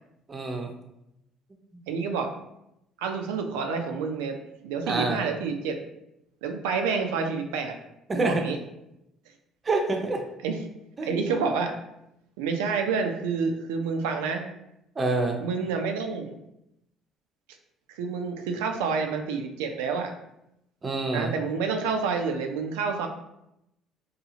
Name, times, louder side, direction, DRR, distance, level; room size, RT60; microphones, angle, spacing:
voice 1, 0.3-0.7 4.9-5.2 8.1-8.4 9.6-10.2 11.0-11.1 15.0-15.4 20.8-21.3, right 3 dB, 35° right, 3 dB, 0.6 m, -26 dB
voice 2, 1.9-2.3 3.0-4.4 4.6-5.8 6.4-7.8 8.1-8.6 10.4-10.6 11.0-11.7 12.4-14.4 15.4-16.3 17.9-20.1 21.1-23.1, right 5 dB, 85° right, 4 dB, 0.3 m, -28 dB
2.8 x 2.3 x 2.7 m, 0.84 s
supercardioid pair, 65°, 0 cm